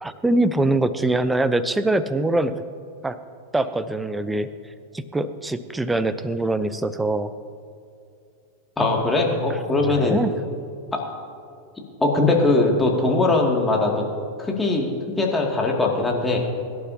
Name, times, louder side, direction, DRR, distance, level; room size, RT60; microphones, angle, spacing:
voice 1, 0.0-2.5 3.0-3.2 3.5-4.5 4.9-7.3 9.8-10.3, right 2 dB, 10° right, 13 dB, 0.7 m, -23 dB
voice 2, 8.8-10.2 10.9-11.0 12.0-14.0 14.4-14.9 15.2-16.4, left 2 dB, 10° left, -1 dB, 2.4 m, -20 dB
23.5 x 11.5 x 2.9 m, 2.5 s
figure-of-eight pair, 90°, 0 cm